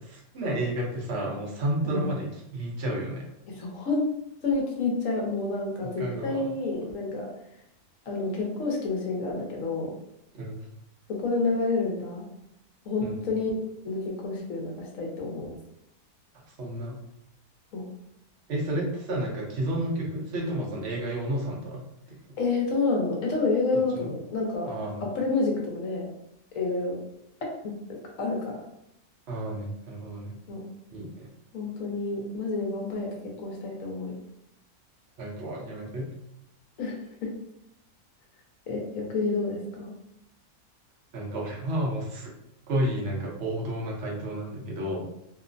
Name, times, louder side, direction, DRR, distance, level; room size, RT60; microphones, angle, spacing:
voice 1, 0.0-3.3 5.8-6.5 10.3-10.6 13.0-13.2 16.6-17.0 18.5-22.2 23.9-24.1 24.7-25.1 29.3-30.4 30.9-31.3 35.2-36.1 41.1-42.3 42.7-45.0, right 1 dB, 55° right, -2 dB, 0.8 m, -31 dB
voice 2, 3.5-4.0 4.4-7.3 8.1-9.9 11.2-12.2 12.9-13.6 13.8-15.5 17.7-17.8 22.4-24.7 25.1-26.1 26.5-27.0 27.6-27.7 28.2-28.6 30.5-30.6 31.5-33.1 33.4-34.2 36.8-37.3 38.7-39.9, left 3 dB, 65° left, -1 dB, 1.0 m, -29 dB
2.9 x 2.0 x 2.5 m, 0.79 s
omnidirectional pair, 1.6 m